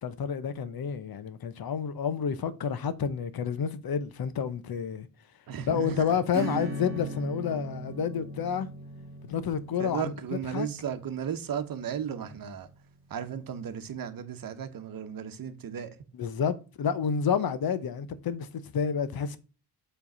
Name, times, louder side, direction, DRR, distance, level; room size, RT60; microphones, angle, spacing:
voice 1, 0.0-5.1 5.7-8.7 9.3-10.1 10.5-10.7 16.1-19.4, left 7 dB, 65° left, 0.9 m, -29 dB
voice 2, 5.5-6.2 9.8-12.7 13.1-15.9, right 8 dB, 60° right, 1.0 m, -35 dB
Acoustic guitar / Strum, 6.3-12.5, right 2 dB, 30° right, 2.3 m, -39 dB
7.5 x 3.4 x 5.4 m
wide cardioid pair, 135°, 39 cm